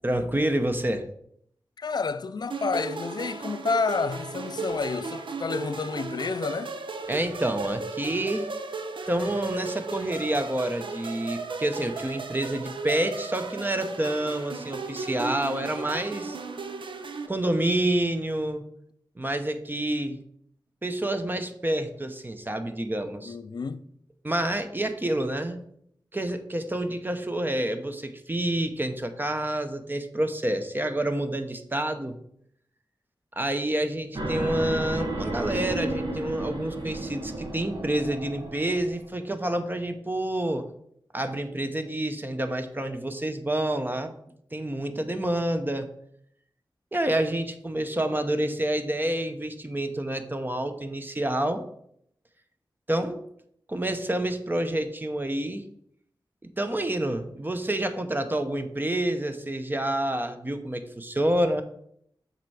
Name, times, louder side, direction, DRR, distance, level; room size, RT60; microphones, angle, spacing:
voice 1, 0.0-1.1 7.1-8.5 9.1-16.4 17.3-18.6 19.2-20.2 20.8-23.3 24.2-25.6 26.1-32.2 33.4-40.7 41.1-44.1 44.5-45.9 46.9-51.7 52.9-53.2 53.7-55.6 56.6-61.6, right 1 dB, 25° right, 0.7 m, -28 dB
voice 2, 1.8-6.8 23.2-23.9, left 4 dB, 55° left, 0.4 m, -30 dB
sound 1, 2.5-17.3, right 4 dB, 80° right, 0.6 m, -36 dB
sound 2, 34.1-39.1, right 1 dB, 65° right, 1.3 m, -33 dB
6.7 x 4.4 x 4.8 m
wide cardioid pair, 75°, 8 cm